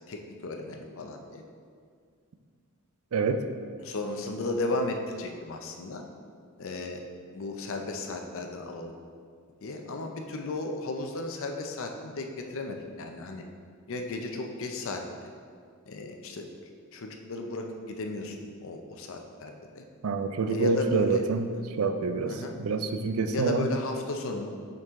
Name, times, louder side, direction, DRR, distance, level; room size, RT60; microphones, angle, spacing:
voice 1, 0.1-1.4 3.8-6.0 6.6-7.0 7.3-9.0 9.6-13.4 13.9-15.0 15.9-16.4 16.9-19.8 20.5-21.3 22.3-22.6 23.3-24.5, left 2 dB, 65° left, 3 dB, 0.6 m, -34 dB
voice 2, 3.1-3.4 20.0-21.5 21.8-22.3 22.6-23.7, right 4 dB, 70° right, 8 dB, 0.4 m, -26 dB
5.4 x 5.4 x 3.6 m, 2.1 s
head